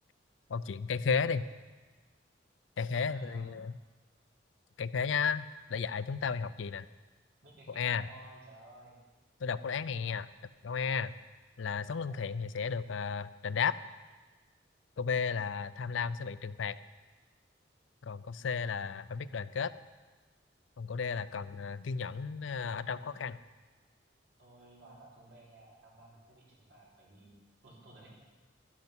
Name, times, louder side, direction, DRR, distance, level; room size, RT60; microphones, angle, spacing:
voice 1, 0.5-1.5 2.8-3.7 4.8-6.9 7.8-8.0 9.4-10.3 10.6-11.1 11.6-13.8 15.0-16.8 18.0-19.7 20.8-23.4, left 6 dB, 90° left, 15 dB, 0.5 m, -33 dB
voice 2, 3.1-3.5 7.4-9.0 12.0-12.4 22.6-23.2 24.4-27.3 27.6-28.1, right 1 dB, 70° right, -5 dB, 4.8 m, -55 dB
12.0 x 11.0 x 6.1 m, 1.3 s
head